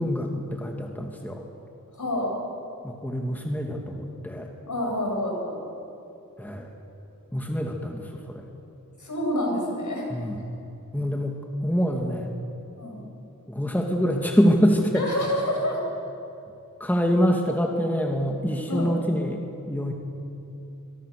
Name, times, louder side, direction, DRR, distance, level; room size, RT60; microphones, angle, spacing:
voice 1, 0.0-1.4 2.8-4.5 6.4-6.7 7.3-8.5 10.1-10.5 10.9-12.3 13.5-15.1 16.8-19.9, equal, 5° left, 1 dB, 2.4 m, -25 dB
voice 2, 1.9-2.4 4.7-5.6 9.0-10.1 12.8-13.0 14.9-15.8 18.7-18.9, left 1 dB, 60° left, -1 dB, 7.7 m, -28 dB
23.5 x 23.0 x 6.8 m, 2.8 s
wide cardioid pair, 65°, 34 cm